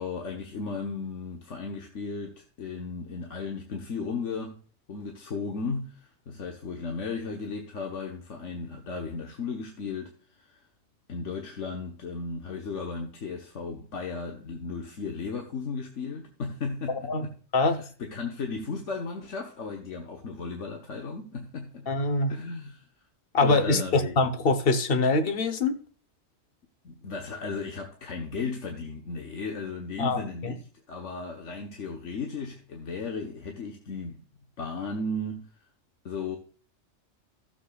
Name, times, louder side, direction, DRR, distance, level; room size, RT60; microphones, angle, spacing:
voice 1, 0.0-4.6 4.9-10.6 11.1-21.9 22.3-22.8 23.4-24.2 26.8-34.3 34.6-35.4 36.0-36.4, left 4 dB, 85° left, 1.6 m, -35 dB
voice 2, 21.9-22.3 23.3-25.8 30.0-30.5, left 3 dB, 55° left, 1.2 m, -24 dB
15.0 x 7.4 x 2.4 m
omnidirectional pair, 1.2 m